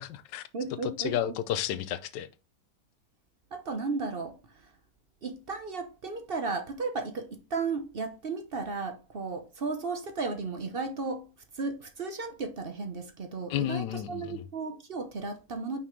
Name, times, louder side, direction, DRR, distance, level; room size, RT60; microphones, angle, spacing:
voice 1, 0.0-0.4 0.8-2.3 13.5-14.4, left 11 dB, 80° left, 1.3 m, -32 dB
voice 2, 0.5-1.2 3.5-4.3 5.2-11.3 11.6-15.8, right 4 dB, 45° right, 0.8 m, -34 dB
5.8 x 5.5 x 3.2 m
omnidirectional pair, 2.0 m